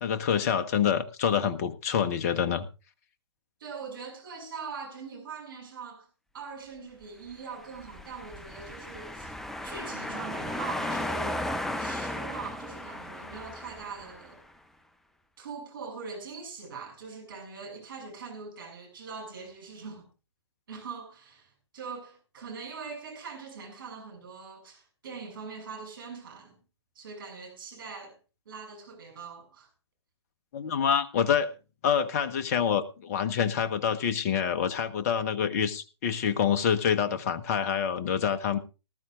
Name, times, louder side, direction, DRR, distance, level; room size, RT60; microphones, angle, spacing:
voice 1, 0.0-2.7 30.5-31.5 31.8-38.6, left 8 dB, 35° left, 1.2 m, -26 dB
voice 2, 3.6-6.1 6.3-9.3 9.6-14.4 15.4-20.1 20.7-26.6 26.9-28.2 28.4-29.7, right 5 dB, 50° right, 6.5 m, -42 dB
sound 1, 7.6-14.4, left 1 dB, ahead, 0.5 m, -35 dB
20.0 x 13.0 x 2.5 m
figure-of-eight pair, 125°, 15 cm